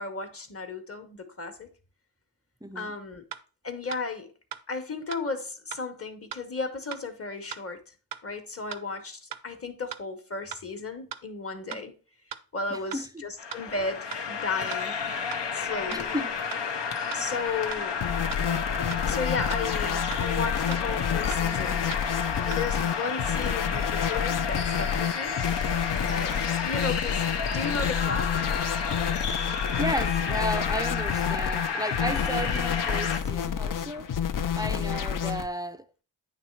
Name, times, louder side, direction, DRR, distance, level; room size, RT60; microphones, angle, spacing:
voice 1, 0.0-1.7 2.7-3.2 3.6-4.3 4.7-7.8 8.2-11.9 12.5-14.9 15.5-16.1 17.1-18.0 19.0-21.8 22.4-25.4 26.0-28.4 34.8-35.0, left 4 dB, 35° left, 1.2 m, -34 dB
voice 2, 2.6-2.9 11.7-11.9 12.7-13.2 15.9-16.4 29.5-34.2 34.6-35.9, equal, 10° right, 0.4 m, -34 dB
sound 1, 3.3-3.4 3.9-4.0 4.5-4.6 5.1-5.2 5.7-5.8 6.3-6.4 6.9-7.0 7.5-7.6 8.1-8.2 8.7-8.8 9.3-9.4 9.9-10.0 10.5-10.6 11.1-11.2 11.7-11.8 12.3-12.4 12.9-13.0 13.5-13.6 14.1-14.2 14.7-14.8 15.3-15.4 15.9-16.0 16.5-16.6 17.1-17.2 17.7-17.8 18.3-18.4 18.9-19.0 19.5-19.6 20.1-20.2 20.7-20.8 21.3-21.4 21.9-22.0 22.5-22.6, right 9 dB, 70° right, 0.6 m, -38 dB
sound 2, 13.4-33.2, left 6 dB, 75° left, 0.9 m, -31 dB
sound 3, 18.0-35.5, left 8 dB, 50° left, 0.5 m, -29 dB
9.3 x 3.2 x 4.5 m
wide cardioid pair, 85°, 42 cm